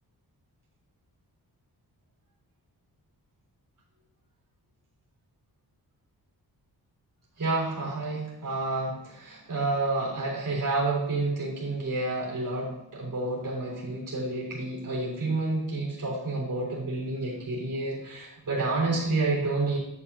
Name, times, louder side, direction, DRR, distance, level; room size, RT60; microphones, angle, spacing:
voice 1, 7.4-19.8, right 2 dB, 55° right, -4 dB, 3.7 m, -29 dB
10.5 x 8.9 x 2.8 m, 0.85 s
wide cardioid pair, 135°, 39 cm